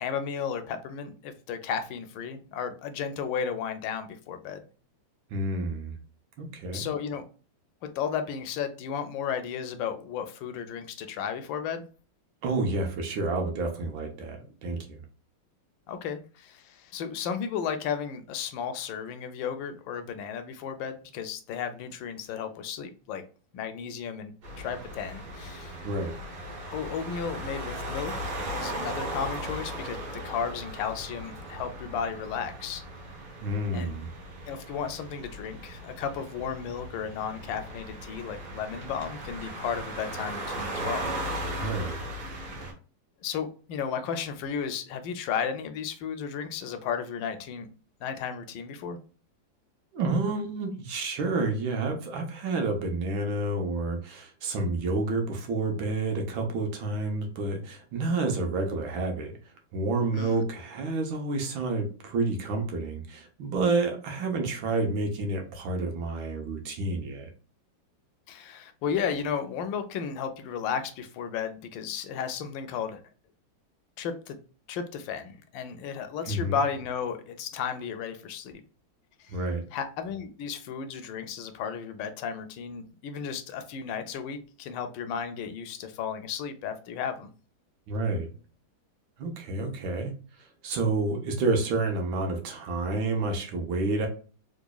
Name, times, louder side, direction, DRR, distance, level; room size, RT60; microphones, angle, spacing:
voice 1, 0.0-4.6 6.7-7.2 7.8-11.8 15.9-23.2 23.5-25.8 26.7-28.1 28.5-30.0 30.2-32.8 33.7-34.0 34.5-41.1 43.2-47.7 48.0-49.0 60.1-60.4 68.3-73.0 74.0-74.4 74.7-78.5 79.2-79.4 79.7-87.3, left 7 dB, 80° left, 8 dB, 1.2 m, -34 dB
voice 2, 5.3-5.9 6.4-6.9 12.4-15.0 25.8-26.1 33.4-34.1 41.6-42.0 49.9-59.4 59.7-67.3 76.3-76.6 79.3-79.7 87.9-88.3 89.2-90.1 90.6-94.1, right 3 dB, 85° right, 3 dB, 1.6 m, -29 dB
sound 1, 24.4-42.7, right 1 dB, 60° right, 1.6 m, -37 dB
3.8 x 3.0 x 2.3 m, 0.38 s
omnidirectional pair, 2.1 m